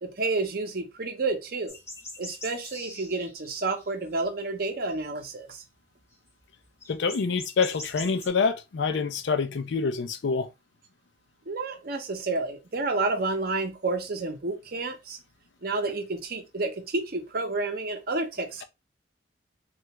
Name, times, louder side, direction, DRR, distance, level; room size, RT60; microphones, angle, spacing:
voice 1, 0.0-1.7 2.2-5.6 11.5-15.2 15.6-18.6, right 3 dB, 55° right, 0.7 m, -30 dB
sound 1, 1.7-4.3 4.6-5.3 6.1-6.2 6.4-6.5 6.8-8.3, left 2 dB, 15° left, 0.7 m, -42 dB
voice 2, 6.9-10.5, left 5 dB, 70° left, 0.4 m, -26 dB
3.3 x 2.4 x 2.9 m
head